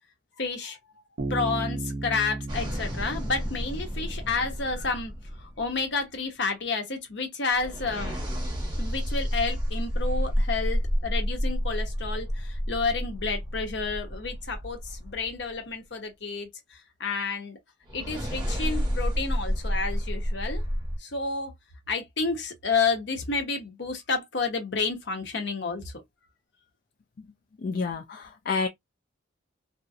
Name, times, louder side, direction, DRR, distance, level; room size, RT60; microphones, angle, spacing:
voice 1, 0.4-0.8 1.3-5.1 5.4-8.2 8.8-17.6 17.9-20.6 21.0-21.5 21.9-25.9, left 4 dB, 65° left, 0.9 m, -30 dB
Bass guitar, 1.2-4.8, right 2 dB, 60° right, 0.7 m, -35 dB
sound 1, 2.5-6.0 7.5-15.5 17.9-21.0, equal, 25° right, 1.0 m, -30 dB
voice 2, 27.6-28.7, left 4 dB, 50° left, 0.3 m, -29 dB
2.7 x 2.0 x 2.4 m
head